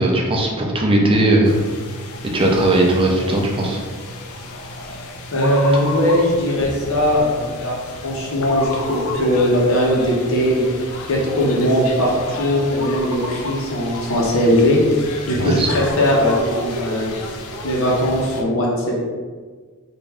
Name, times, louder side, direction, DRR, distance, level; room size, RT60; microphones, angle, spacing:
voice 1, 0.0-1.6 2.3-3.8 5.7-5.8 15.3-15.7, right 1 dB, 25° right, -1 dB, 0.5 m, -18 dB
sound 1, 1.4-18.4, left 1 dB, 90° left, 0.4 m, -32 dB
voice 2, 5.3-7.8 8.0-10.6 11.1-15.0 15.3-17.1 17.6-19.0, equal, 65° left, -3 dB, 0.9 m, -19 dB
3.1 x 2.5 x 3.5 m, 1.5 s
head